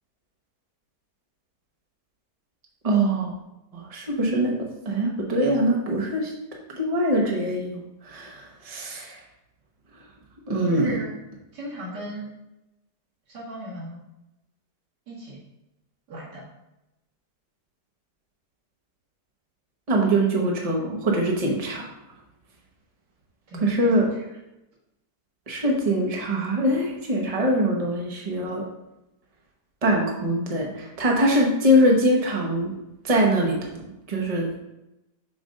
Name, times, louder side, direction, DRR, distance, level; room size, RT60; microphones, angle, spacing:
voice 1, 2.8-3.3 3.7-6.3 6.7-9.1 10.5-11.0 19.9-21.9 23.6-24.1 25.5-28.7 29.8-32.7 33.0-34.5, right 1 dB, 25° right, -1 dB, 0.9 m, -23 dB
voice 2, 10.6-11.1 11.5-12.3 13.3-14.0 15.1-15.4 16.1-16.4 23.5-24.2, right 1 dB, 85° right, -8 dB, 2.5 m, -37 dB
7.0 x 2.6 x 5.3 m, 0.93 s
omnidirectional pair, 1.8 m